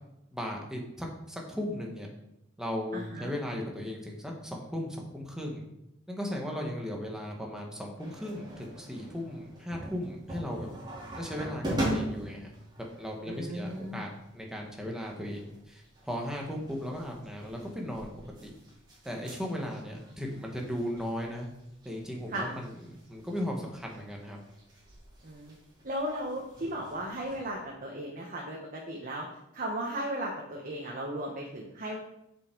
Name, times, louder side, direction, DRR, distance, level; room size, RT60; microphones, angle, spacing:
voice 1, 0.3-2.1 2.6-5.6 6.1-10.7 11.2-18.1 18.4-18.5 19.0-21.5 21.8-24.4, equal, 5° right, 0 dB, 1.5 m, -37 dB
voice 2, 2.9-3.3 13.3-14.0 22.3-22.5 25.2-25.6 25.8-29.3 29.5-32.0, right 1 dB, 45° right, -1 dB, 1.2 m, -36 dB
sound 1, 8.0-27.5, right 1 dB, 20° right, 3.2 m, -42 dB
7.2 x 6.9 x 4.6 m, 0.83 s
head